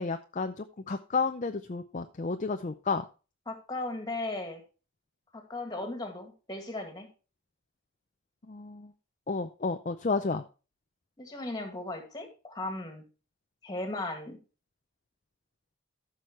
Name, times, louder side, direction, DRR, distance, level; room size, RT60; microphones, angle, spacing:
voice 1, 0.0-3.0 8.5-8.9 9.3-10.4, left 4 dB, 35° left, 7 dB, 0.5 m, -31 dB
voice 2, 3.5-4.6 5.3-7.1 11.2-13.0 13.6-14.4, left 2 dB, 20° left, 3 dB, 2.1 m, -36 dB
14.0 x 6.3 x 3.1 m, 0.33 s
head